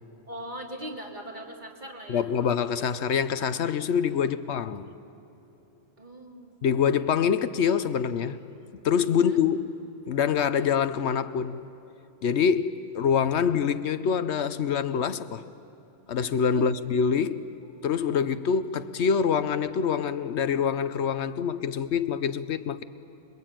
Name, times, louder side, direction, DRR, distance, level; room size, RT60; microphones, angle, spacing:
voice 1, 0.3-2.3 4.2-4.5 6.0-6.6 9.1-9.4 16.5-16.7, right 1 dB, 40° right, 2.8 m, -40 dB
voice 2, 2.1-4.9 6.6-8.4 8.8-9.6 10.1-11.6 12.2-15.4 16.1-17.5 17.8-22.8, left 7 dB, 75° left, 1.0 m, -25 dB
26.0 x 22.0 x 9.0 m
omnidirectional pair, 1.2 m